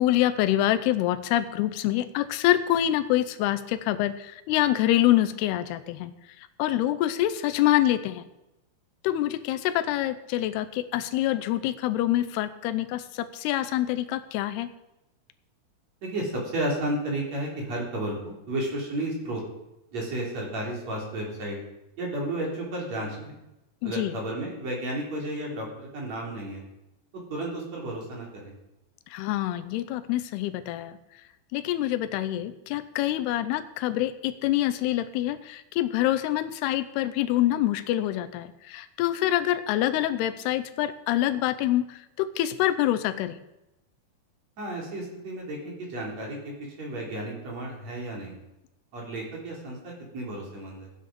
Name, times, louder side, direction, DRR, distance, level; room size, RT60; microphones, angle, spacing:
voice 1, 0.0-6.1 6.4-8.2 9.0-14.7 23.8-24.1 29.1-31.0 31.5-43.4, left 13 dB, 85° left, 10 dB, 2.7 m, -26 dB
voice 2, 16.0-19.4 19.9-21.6 22.0-23.4 23.8-26.6 27.1-28.5 44.6-48.4 48.9-50.9, right 1 dB, 45° right, -2 dB, 4.4 m, -33 dB
14.0 x 9.9 x 5.2 m, 0.92 s
omnidirectional pair, 4.5 m